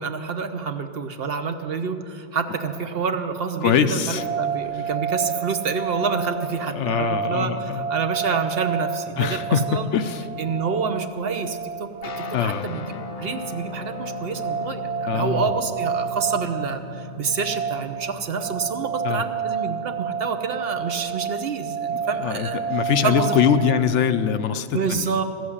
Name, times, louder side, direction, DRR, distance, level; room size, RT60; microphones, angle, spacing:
voice 1, 0.0-9.4 9.7-9.9 10.4-11.9 12.2-22.6 23.0-23.3 23.6-23.7 24.7-25.2, right 5 dB, 55° right, 8 dB, 1.0 m, -28 dB
voice 2, 3.6-4.2 6.7-7.8 9.2-10.2 12.3-12.7 15.1-15.5 19.0-19.2 21.9-25.1, left 8 dB, 80° left, 10 dB, 1.0 m, -23 dB
sound 1, 4.2-23.8, right 7 dB, 75° right, 1.2 m, -30 dB
sound 2, 12.0-20.9, left 5 dB, 55° left, 0.4 m, -38 dB
14.5 x 7.9 x 9.8 m, 2.6 s
omnidirectional pair, 1.2 m